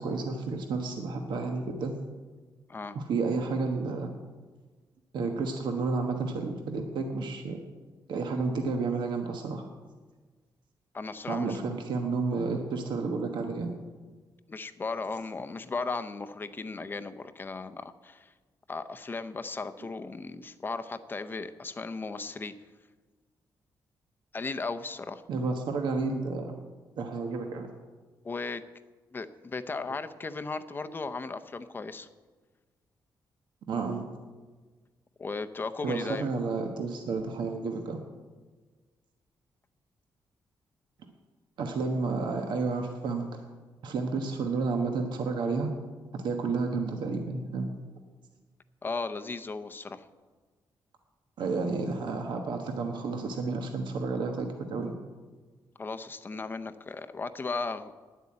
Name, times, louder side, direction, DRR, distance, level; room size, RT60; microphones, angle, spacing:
voice 1, 0.0-1.9 2.9-4.1 5.1-7.6 8.1-9.7 11.3-13.7 25.3-26.5 27.0-27.7 33.7-34.0 35.8-38.0 41.6-43.5 43.8-45.7 46.1-47.7 51.4-55.0, right 4 dB, 75° right, 4 dB, 1.1 m, -31 dB
voice 2, 10.9-11.7 14.5-18.3 18.7-22.5 24.3-25.2 28.2-28.6 29.1-32.1 35.2-36.3 48.8-50.1 55.8-58.0, left 3 dB, 25° left, 10 dB, 0.6 m, -36 dB
10.5 x 8.0 x 8.6 m, 1.4 s
cardioid pair, 135°, 8 cm